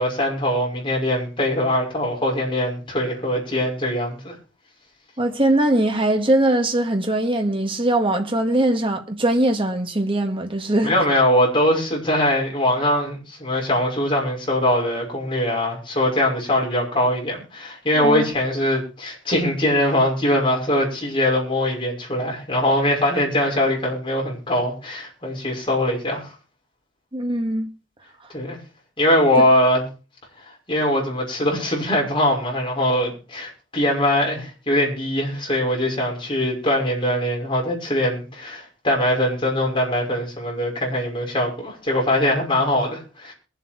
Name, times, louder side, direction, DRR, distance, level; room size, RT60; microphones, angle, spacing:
voice 1, 0.0-4.3 10.8-26.3 28.3-28.6 29.0-29.8 30.7-43.3, left 1 dB, 25° left, 5.9 m, -22 dB
voice 2, 5.2-10.9 18.0-18.2 27.1-27.7, right 1 dB, 25° right, 1.8 m, -21 dB
22.5 x 8.0 x 4.5 m
head